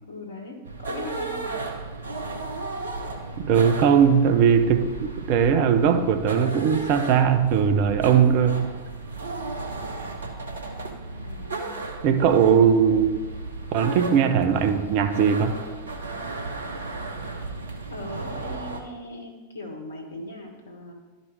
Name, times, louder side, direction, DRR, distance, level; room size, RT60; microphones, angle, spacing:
voice 1, 0.0-1.5 11.2-11.8 17.9-20.9, left 1 dB, 65° left, 2 dB, 1.7 m, -39 dB
sound 1, 0.6-18.8, right 3 dB, 70° right, 1.0 m, -34 dB
voice 2, 3.4-8.7 12.0-13.2 13.7-15.6, right 7 dB, 45° right, 8 dB, 0.7 m, -19 dB
12.0 x 5.2 x 4.9 m, 1.3 s
figure-of-eight pair, 90°, 0 cm